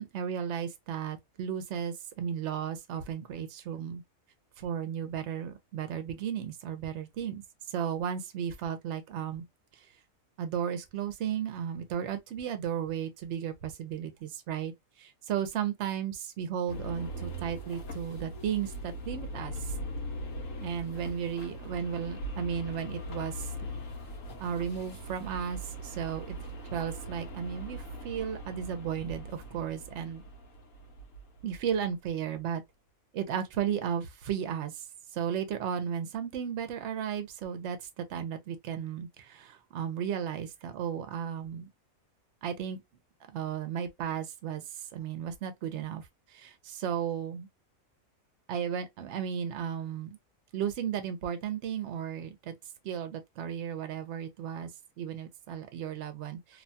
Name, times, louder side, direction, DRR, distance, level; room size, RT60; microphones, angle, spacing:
voice 1, 0.0-4.0 4.6-7.4 7.7-9.4 9.8-9.9 10.4-14.7 15.0-19.7 20.6-23.5 24.4-26.5 26.7-30.2 31.4-32.6 33.1-34.9 35.1-41.7 42.4-42.8 43.3-47.5 48.5-50.2 50.5-52.5 52.8-54.7 55.0-56.6, right 8 dB, 65° right, 0.9 m, -34 dB
sound 1, 16.7-31.8, equal, 80° left, 1.2 m, -40 dB
2.7 x 2.2 x 2.6 m
omnidirectional pair, 1.4 m